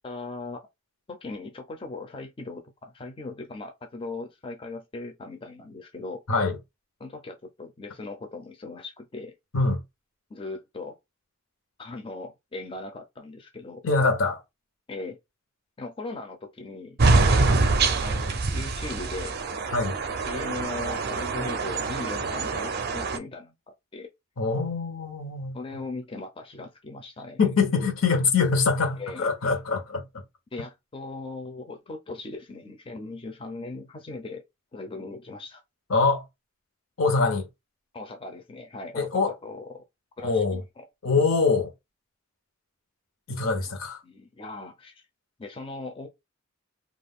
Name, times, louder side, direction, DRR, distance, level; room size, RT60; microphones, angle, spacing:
voice 1, 0.0-0.7 1.1-6.2 7.0-9.3 10.3-11.0 11.8-13.8 14.9-15.2 15.8-17.0 17.9-19.4 20.3-23.5 23.9-24.1 25.5-27.4 29.0-29.3 30.5-34.4 34.7-35.6 37.9-39.8 40.2-40.8 44.0-45.1 45.4-46.1, left 3 dB, 25° left, 0.4 m, -38 dB
voice 2, 13.8-14.4 19.7-19.9 24.4-25.6 27.4-30.1 35.9-36.2 37.0-37.5 38.9-39.3 40.2-40.6 41.0-41.7 43.3-44.0, left 4 dB, 85° left, 0.8 m, -24 dB
sound 1, 17.0-23.2, right 3 dB, 50° right, 0.4 m, -25 dB
2.4 x 2.2 x 3.5 m
head